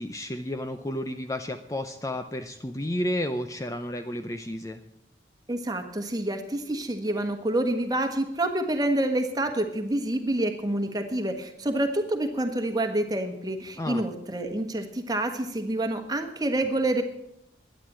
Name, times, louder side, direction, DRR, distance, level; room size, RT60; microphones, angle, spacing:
voice 1, 0.0-4.8 13.8-14.0, left 1 dB, 15° left, 7 dB, 0.6 m, -32 dB
voice 2, 5.5-17.0, right 1 dB, 20° right, 5 dB, 1.4 m, -27 dB
12.0 x 9.5 x 8.7 m, 0.81 s
head